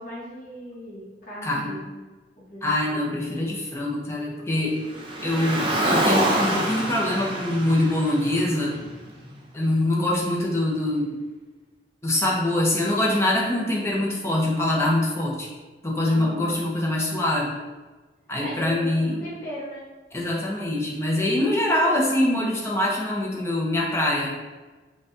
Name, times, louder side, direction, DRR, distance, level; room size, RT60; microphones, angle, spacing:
voice 1, 0.0-2.0 2.4-3.1 16.0-16.6 18.4-19.9, equal, 55° left, -8 dB, 1.1 m, -38 dB
voice 2, 1.4-1.7 2.6-4.8 5.2-8.7 9.5-11.2 12.0-15.5 15.8-17.6 18.3-19.2 20.1-24.4, left 1 dB, 15° left, -4 dB, 0.8 m, -24 dB
Car, 4.9-9.3, right 1 dB, 30° right, 0.6 m, -26 dB
5.5 x 2.5 x 2.7 m, 1.3 s
head